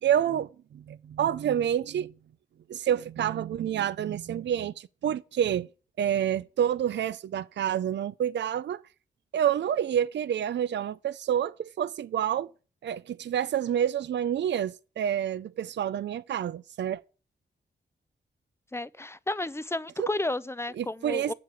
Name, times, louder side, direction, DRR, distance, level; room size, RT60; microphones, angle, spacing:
voice 1, 0.0-2.1 2.7-5.7 6.0-8.8 9.3-12.5 12.8-17.0 20.0-20.1 20.8-21.3, right 10 dB, 75° right, 0.5 m, -28 dB
voice 2, 18.7-21.3, left 2 dB, 15° left, 0.5 m, -32 dB
7.5 x 7.5 x 8.4 m
cardioid pair, 75°, 19 cm